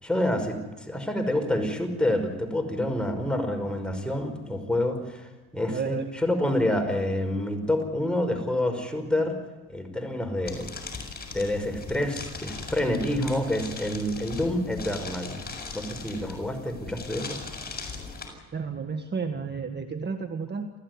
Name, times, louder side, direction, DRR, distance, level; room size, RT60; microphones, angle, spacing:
voice 1, 0.0-9.4 9.7-10.7 11.3-15.4 15.7-17.4, left 1 dB, 5° left, 4 dB, 5.6 m, -28 dB
voice 2, 5.7-6.1 18.5-20.7, right 5 dB, 35° right, 7 dB, 1.8 m, -32 dB
sound 1, 10.4-18.3, left 4 dB, 30° left, 7.2 m, -39 dB
29.0 x 14.5 x 9.7 m, 1.3 s
cardioid pair, 90°, 30 cm